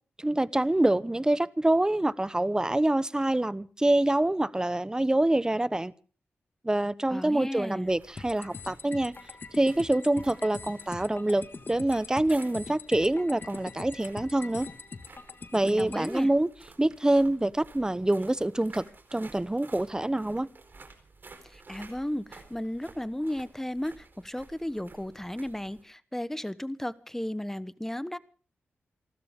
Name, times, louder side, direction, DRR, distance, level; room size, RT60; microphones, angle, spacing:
voice 1, 0.2-5.9 6.6-9.1 9.5-11.4 11.7-14.7 15.5-16.5 16.8-18.8 19.1-20.5, right 1 dB, 15° right, 0.9 m, -26 dB
voice 2, 7.1-7.9 15.6-16.3 21.5-28.2, left 1 dB, 10° left, 1.1 m, -34 dB
sound 1, 7.8-25.8, right 3 dB, 50° right, 4.2 m, -53 dB
sound 2, 8.2-16.2, left 4 dB, 50° left, 1.6 m, -43 dB
28.5 x 13.0 x 3.6 m
cardioid pair, 50°, 4 cm